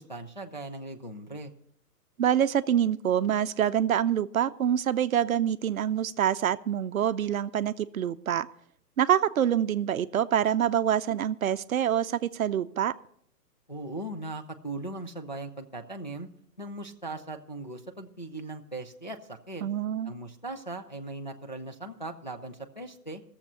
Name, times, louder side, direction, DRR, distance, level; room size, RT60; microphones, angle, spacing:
voice 1, 0.0-1.5 13.7-16.3 16.6-19.6 20.0-23.2, right 2 dB, 30° left, 2 dB, 0.4 m, -39 dB
voice 2, 2.2-8.5 9.0-12.9 19.6-20.1, right 9 dB, 60° right, 13 dB, 0.6 m, -26 dB
15.0 x 7.3 x 6.5 m, 0.68 s
hypercardioid pair, 170°, 48 cm